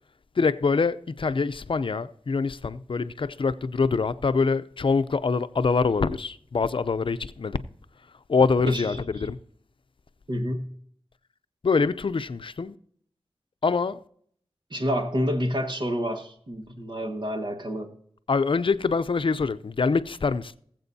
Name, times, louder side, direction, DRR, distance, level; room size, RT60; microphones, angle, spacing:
voice 1, 0.4-7.6 8.3-9.4 11.6-12.8 13.6-14.0 18.3-20.5, left 4 dB, 60° left, 0.5 m, -24 dB
voice 2, 8.7-9.0 10.3-10.7 14.7-17.9, equal, 50° right, 1.7 m, -28 dB
20.0 x 7.7 x 2.7 m
wide cardioid pair, 50°, 10 cm